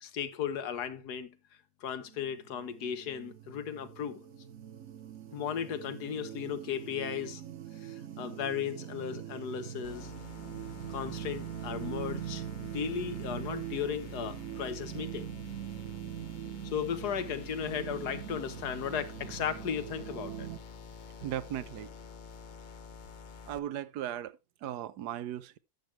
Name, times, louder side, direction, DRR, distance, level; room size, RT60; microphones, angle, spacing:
voice 1, 0.0-1.4 1.8-4.2 5.3-7.4 7.7-10.1 10.9-15.3 16.6-20.5, left 8 dB, 90° left, 1.6 m, -36 dB
sound 1, 2.0-20.6, right 11 dB, 60° right, 1.3 m, -42 dB
sound 2, 9.8-23.6, left 5 dB, 45° left, 0.6 m, -49 dB
voice 2, 21.2-21.9 23.5-25.6, right 11 dB, 85° right, 1.3 m, -37 dB
12.0 x 7.6 x 3.2 m
omnidirectional pair, 1.7 m